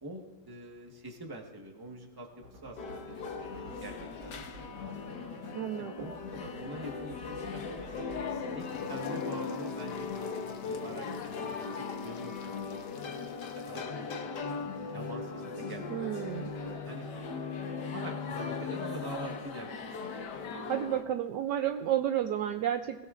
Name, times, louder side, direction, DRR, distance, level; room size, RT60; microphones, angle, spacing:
voice 1, 0.0-4.9 5.2-5.3 5.8-8.0 8.5-12.5 13.2-14.1 14.9-15.8 16.1-17.1 17.9-20.2, right 1 dB, 15° right, 1 dB, 0.9 m, -45 dB
sound 1, 2.3-9.4, right 1 dB, 55° right, 3.2 m, -51 dB
sound 2, 2.8-21.0, left 5 dB, 55° left, 1.5 m, -38 dB
voice 2, 5.5-6.1 15.9-16.5 20.7-23.1, right 10 dB, 85° right, 7 dB, 0.9 m, -31 dB
sound 3, 8.6-13.8, left 6 dB, 70° left, 1.8 m, -57 dB
24.5 x 16.5 x 2.5 m, 1.2 s
omnidirectional pair, 2.4 m